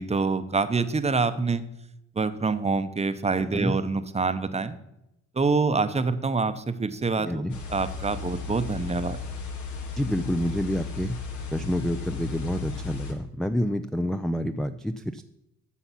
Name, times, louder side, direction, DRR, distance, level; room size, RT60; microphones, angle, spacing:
voice 1, 0.0-1.6 2.2-4.8 5.3-9.2, right 4 dB, 20° right, 11 dB, 0.8 m, -26 dB
voice 2, 7.2-7.6 10.0-11.2 11.5-15.2, equal, ahead, 9 dB, 0.4 m, -28 dB
sound 1, 7.5-13.1, left 4 dB, 75° left, 1.8 m, -35 dB
13.0 x 5.8 x 5.8 m, 0.86 s
cardioid pair, 90°, 30 cm